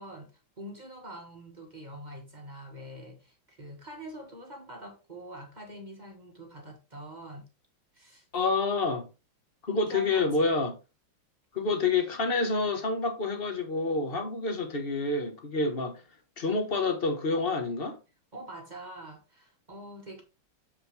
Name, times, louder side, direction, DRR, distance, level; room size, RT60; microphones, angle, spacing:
voice 1, 0.0-7.4 7.9-8.3 9.7-10.5 18.3-20.2, right 1 dB, 25° right, 1.1 m, -44 dB
voice 2, 8.3-9.1 9.6-10.8 11.5-16.0 16.4-18.0, left 3 dB, 35° left, 1.0 m, -28 dB
6.8 x 5.7 x 3.2 m
omnidirectional pair, 2.3 m